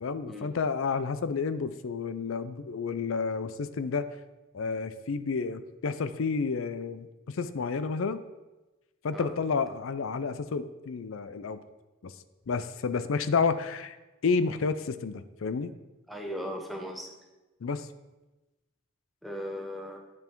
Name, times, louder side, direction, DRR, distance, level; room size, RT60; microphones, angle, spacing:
voice 1, 0.0-4.1 4.5-8.3 9.0-11.6 12.0-12.1 12.5-14.0 14.2-15.7 17.6-17.9, left 5 dB, 75° left, 13 dB, 0.5 m, -30 dB
voice 2, 16.1-17.1 19.2-20.0, equal, ahead, 1 dB, 0.9 m, -37 dB
9.1 x 5.7 x 4.5 m, 1.1 s
head